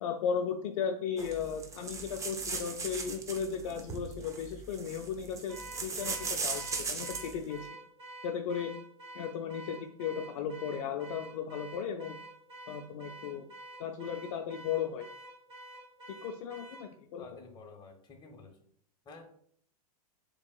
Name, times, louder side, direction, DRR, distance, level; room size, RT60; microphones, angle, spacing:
voice 1, 0.0-7.7 8.2-8.7 9.1-12.2 12.7-13.5 13.8-15.0 16.2-17.3, left 7 dB, 55° left, 4 dB, 0.5 m, -36 dB
sound 1, 1.2-7.4, right 4 dB, 15° right, 0.6 m, -38 dB
Car / Alarm, 5.5-16.9, right 2 dB, 30° right, 1.7 m, -48 dB
voice 2, 17.2-18.5 19.0-19.2, left 4 dB, 20° left, 2 dB, 1.2 m, -50 dB
6.9 x 2.9 x 2.3 m, 0.64 s
hypercardioid pair, 110°, 20 cm